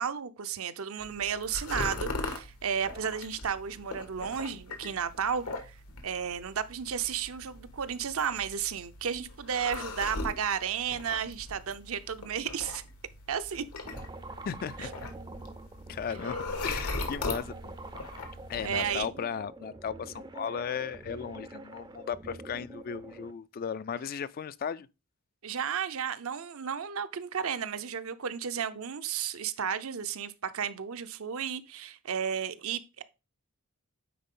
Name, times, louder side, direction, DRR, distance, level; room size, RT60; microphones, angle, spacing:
voice 1, 0.0-5.8 6.0-12.8 13.3-13.6 14.8-14.9 18.6-19.1 25.4-33.0, right 7 dB, 65° right, 0.6 m, -33 dB
sound 1, 1.0-19.1, left 2 dB, 85° left, 1.6 m, -40 dB
sound 2, 13.8-23.3, right 2 dB, 20° right, 0.5 m, -45 dB
voice 2, 14.5-15.0 15.9-17.7 18.5-24.9, left 7 dB, 40° left, 0.3 m, -36 dB
9.4 x 4.1 x 3.7 m
head